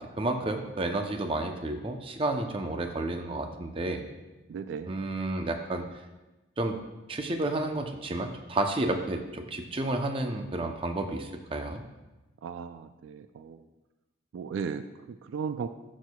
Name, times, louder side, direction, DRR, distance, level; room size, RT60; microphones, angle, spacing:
voice 1, 0.0-4.0 4.9-5.8 6.6-6.7 7.1-11.8, right 2 dB, 25° right, 5 dB, 0.6 m, -31 dB
voice 2, 4.5-5.0 12.4-13.6 14.3-15.7, right 6 dB, 75° right, 11 dB, 0.3 m, -36 dB
11.5 x 6.3 x 2.2 m, 1.1 s
head